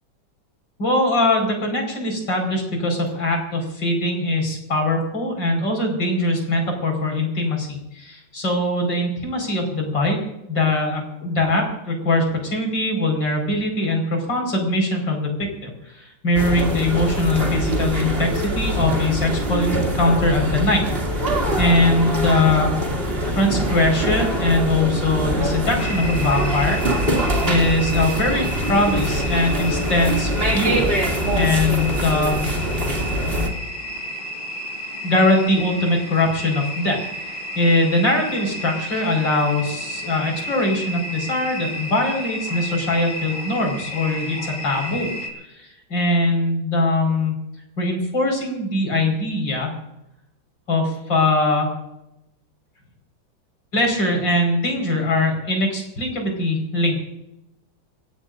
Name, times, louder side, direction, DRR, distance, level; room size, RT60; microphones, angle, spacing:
voice 1, 0.8-10.2 10.5-20.8 21.2-22.7 23.3-26.8 27.5-30.8 31.4-32.5 35.0-37.0 37.2-45.1 45.6-47.3 47.8-49.7 50.7-51.7 53.7-57.1, left 2 dB, 65° left, 2 dB, 5.5 m, -21 dB
sound 1, 16.3-33.5, equal, 30° right, 2.7 m, -23 dB
sound 2, 25.8-45.3, equal, 90° left, 4.3 m, -32 dB
26.0 x 17.5 x 2.6 m, 0.88 s
omnidirectional pair, 2.1 m